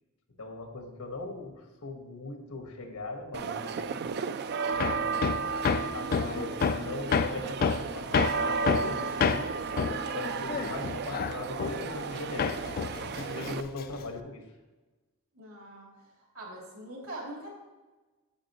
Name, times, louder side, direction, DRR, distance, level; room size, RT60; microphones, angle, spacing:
voice 1, 0.4-4.0 4.6-5.4 5.9-9.5 10.1-12.5 12.9-14.5, left 2 dB, 85° left, 4 dB, 1.4 m, -40 dB
sound 1, 3.3-13.6, right 5 dB, 50° right, 0.3 m, -33 dB
Hammer, 4.8-12.1 12.4-14.2, left 5 dB, 40° left, 0.3 m, -29 dB
voice 2, 15.3-17.6, right 1 dB, 75° right, -2 dB, 2.8 m, -43 dB
8.8 x 8.4 x 3.0 m, 1.2 s
head